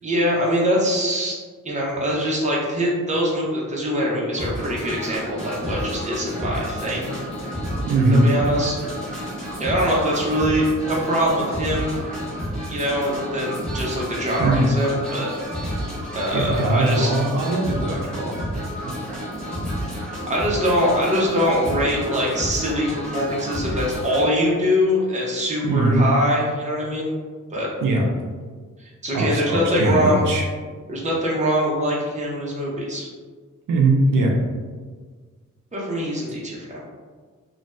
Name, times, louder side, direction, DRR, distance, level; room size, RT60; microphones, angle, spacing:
voice 1, 0.0-1.4 1.6-7.2 8.2-8.8 9.6-12.0 12.7-15.7 16.1-17.1 20.3-27.1 27.5-27.7 28.8-30.2 30.9-33.1 35.7-36.8, equal, 20° right, -4 dB, 0.7 m, -23 dB
sound 1, 4.4-24.2, equal, ahead, 1.1 m, -30 dB
voice 2, 7.9-8.3 14.4-14.7 16.3-18.3 18.8-18.9 25.6-26.0 27.8-28.0 29.1-30.5 33.7-34.3, right 2 dB, 80° right, 0 dB, 0.5 m, -20 dB
2.5 x 2.3 x 3.1 m, 1.5 s
wide cardioid pair, 120°, 32 cm